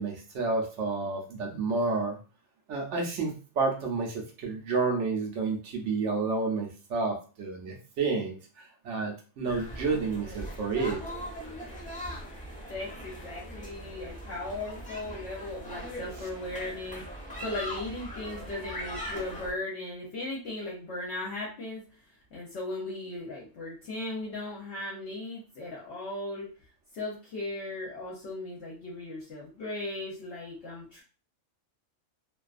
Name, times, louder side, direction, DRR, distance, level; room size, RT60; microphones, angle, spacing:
voice 1, 0.0-2.2 2.7-11.0, right 4 dB, 65° right, 1 dB, 0.9 m, -30 dB
sound 1, 9.5-19.5, equal, 5° left, 0.7 m, -40 dB
voice 2, 12.7-17.0 17.4-22.0 22.3-26.5 26.9-31.0, left 2 dB, 60° left, -4 dB, 0.8 m, -37 dB
2.5 x 2.3 x 2.3 m, 0.35 s
omnidirectional pair, 1.4 m